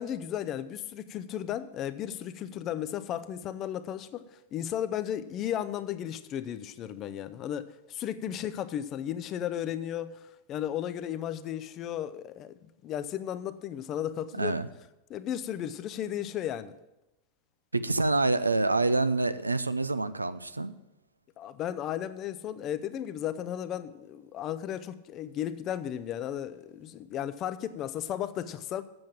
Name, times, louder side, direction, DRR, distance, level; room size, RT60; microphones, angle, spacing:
voice 1, 0.0-10.2 10.5-12.6 12.8-14.6 15.1-16.8 21.4-28.8, left 10 dB, 35° left, 0.5 m, -34 dB
voice 2, 14.4-14.7 17.7-20.7, right 2 dB, 80° right, 0.4 m, -27 dB
7.8 x 7.4 x 7.4 m
figure-of-eight pair, 90°, 0 cm